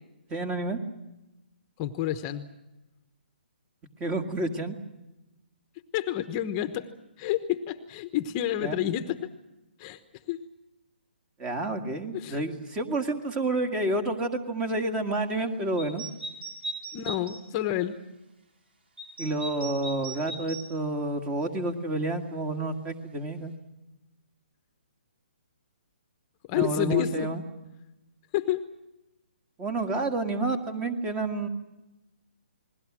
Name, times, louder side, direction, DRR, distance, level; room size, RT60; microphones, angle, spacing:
voice 1, 0.3-0.8 4.0-4.8 8.6-8.8 11.4-16.0 19.2-23.5 26.5-27.4 29.6-31.5, right 2 dB, 15° right, 7 dB, 1.9 m, -29 dB
voice 2, 1.8-2.5 5.9-6.9 7.2-9.3 9.8-10.0 10.3-10.4 12.1-12.4 16.9-17.9 26.5-27.3 28.3-28.6, left 12 dB, 25° left, 9 dB, 1.1 m, -29 dB
sound 1, 15.8-17.4 19.0-20.7, right 2 dB, 70° right, 5.7 m, -38 dB
29.0 x 21.0 x 6.2 m, 0.99 s
hypercardioid pair, 150°, 6 cm